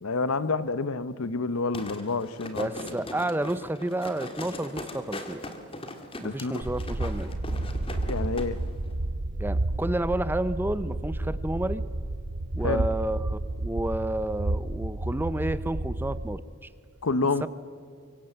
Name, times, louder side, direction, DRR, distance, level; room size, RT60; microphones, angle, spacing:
voice 1, 0.0-2.7 6.2-6.6 8.0-8.6 12.6-12.9 17.0-17.5, left 3 dB, 70° left, 0.8 m, -28 dB
sound 1, 1.7-8.5 8.8-8.9, left 2 dB, 25° left, 1.8 m, -40 dB
voice 2, 2.6-5.4 6.2-7.4 9.4-11.8 12.5-16.7 17.4-17.5, right 1 dB, 10° right, 0.5 m, -30 dB
sound 2, 6.6-16.4, right 2 dB, 55° right, 0.8 m, -31 dB
25.0 x 23.5 x 7.8 m
head